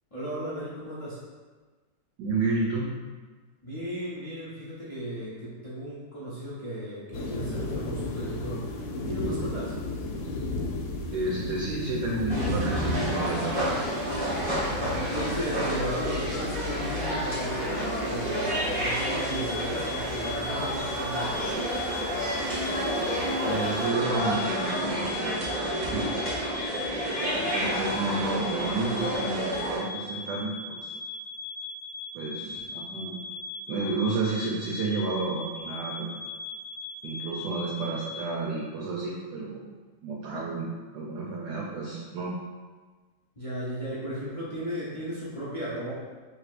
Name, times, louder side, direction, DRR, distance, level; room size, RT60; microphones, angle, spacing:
voice 1, 0.1-1.2 3.6-9.7 14.9-21.3 43.4-45.9, equal, 45° left, -9 dB, 0.4 m, -35 dB
voice 2, 2.2-3.0 11.1-13.6 23.4-25.4 25.9-26.1 27.5-30.9 32.1-33.2 33.7-36.1 37.0-39.7 40.0-40.7 40.9-42.3, right 3 dB, 70° right, -3 dB, 1.1 m, -31 dB
sound 1, 7.1-23.9, left 1 dB, 85° left, 1.4 m, -35 dB
sound 2, 12.3-29.8, equal, 35° right, 0.9 m, -30 dB
sound 3, 18.9-38.2, left 3 dB, 50° right, 1.4 m, -39 dB
4.8 x 3.2 x 2.4 m, 1.4 s
omnidirectional pair, 2.0 m